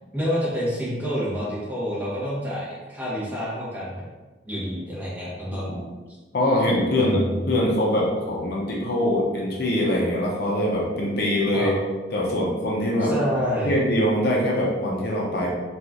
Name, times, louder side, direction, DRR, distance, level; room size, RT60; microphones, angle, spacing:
voice 1, 0.1-3.9 4.4-5.7 6.9-7.3 11.5-11.7 13.0-13.8, equal, 10° right, -9 dB, 1.0 m, -28 dB
voice 2, 6.3-7.2 7.5-11.7 12.1-13.1 13.6-15.5, left 1 dB, 55° left, -3 dB, 0.6 m, -23 dB
2.8 x 2.4 x 3.6 m, 1.3 s
head